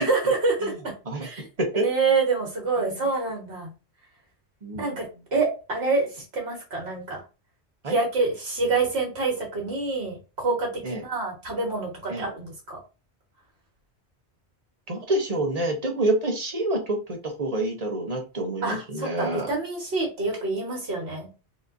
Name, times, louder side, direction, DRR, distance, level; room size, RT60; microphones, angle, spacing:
voice 1, 0.0-0.9 1.2-1.5 1.7-3.7 4.8-5.0 5.3-7.2 7.9-12.8 18.6-21.3, right 3 dB, 65° right, -1 dB, 1.8 m, -27 dB
voice 2, 14.9-19.5, right 1 dB, 35° right, 2 dB, 0.9 m, -27 dB
4.2 x 2.8 x 2.5 m, 0.31 s
omnidirectional pair, 1.2 m